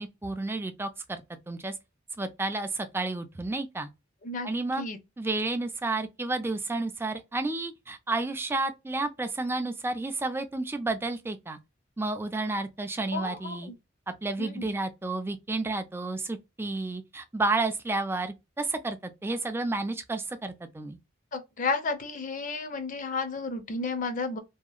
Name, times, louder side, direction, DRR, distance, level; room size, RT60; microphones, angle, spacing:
voice 1, 0.0-1.7 2.2-3.9 4.4-4.8 5.2-11.6 12.0-13.7 14.2-21.0, right 2 dB, 10° right, 0.3 m, -31 dB
voice 2, 13.1-13.7 14.4-14.7 21.3-24.4, left 4 dB, 40° left, 0.6 m, -32 dB
2.8 x 2.4 x 2.3 m
head